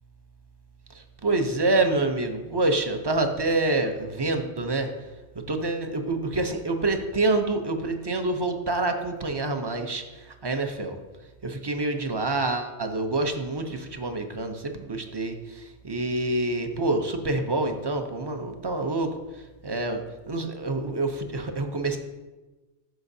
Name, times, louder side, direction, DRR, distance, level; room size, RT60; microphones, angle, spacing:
voice 1, 0.9-4.9 5.5-11.0 11.4-19.2 19.6-22.0, right 2 dB, 30° right, 5 dB, 0.5 m, -27 dB
13.5 x 5.0 x 2.7 m, 1.2 s
omnidirectional pair, 1.2 m